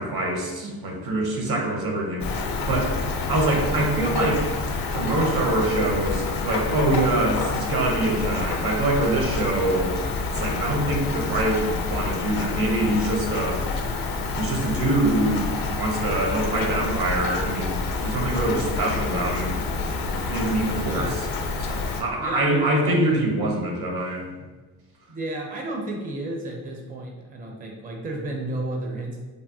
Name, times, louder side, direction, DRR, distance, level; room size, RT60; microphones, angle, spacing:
voice 1, 0.0-2.4 2.7-4.5 4.9-9.9 10.3-13.6 14.4-15.4 15.8-19.6 20.3-21.1 21.6-24.3, right 1 dB, 55° right, 1 dB, 0.9 m, -24 dB
Rain, 2.2-22.0, left 3 dB, 50° left, 0.5 m, -28 dB
voice 2, 20.8-21.2 22.2-22.9 24.4-24.5 25.1-29.2, right 1 dB, 20° right, 0 dB, 0.5 m, -33 dB
3.2 x 2.0 x 2.7 m, 1.3 s
supercardioid pair, 50°, 44 cm